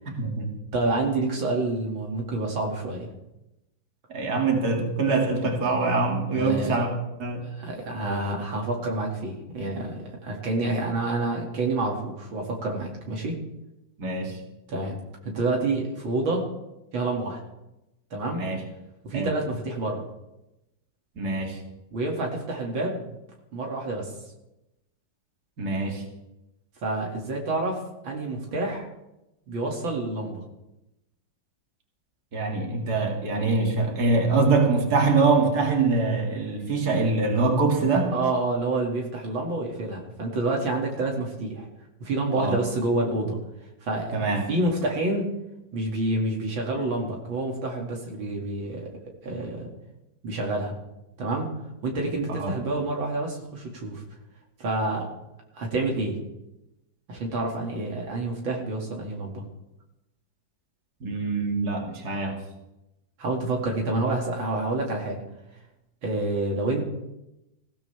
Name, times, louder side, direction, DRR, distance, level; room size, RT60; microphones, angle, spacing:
voice 1, 0.2-0.5 4.1-6.9 7.2-7.5 14.0-14.4 18.3-18.6 19.1-19.3 21.2-21.6 25.6-26.0 32.3-38.2 42.3-42.6 44.1-44.4 52.4-52.5 61.0-62.4, right 3 dB, 50° right, 1 dB, 2.8 m, -24 dB
voice 2, 0.7-3.1 6.3-6.8 7.5-13.4 14.7-15.0 15.2-16.5 16.9-17.4 18.1-18.4 19.0-20.0 21.9-23.1 23.5-24.1 26.8-27.8 28.0-28.9 29.5-30.4 38.1-41.7 42.0-43.4 43.8-44.2 44.5-45.3 45.7-48.9 49.2-49.7 50.2-50.8 51.2-51.5 51.8-54.0 54.6-55.1 55.5-56.2 57.1-59.4 63.2-65.2 66.0-66.8, right 2 dB, 80° right, 0 dB, 3.1 m, -28 dB
20.0 x 16.5 x 3.4 m, 0.92 s
omnidirectional pair, 2.1 m